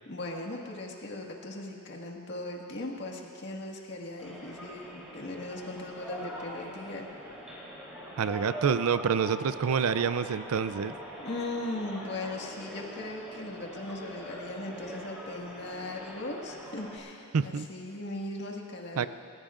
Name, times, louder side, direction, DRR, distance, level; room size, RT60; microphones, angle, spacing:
voice 1, 0.1-7.1 11.2-19.1, left 2 dB, 50° left, 0 dB, 1.8 m, -38 dB
sound 1, 4.2-17.0, equal, 5° right, 3.4 m, -43 dB
voice 2, 8.2-10.9 17.3-17.7 19.0-19.1, right 6 dB, 70° right, 13 dB, 0.4 m, -27 dB
29.0 x 15.5 x 2.5 m, 2.6 s
head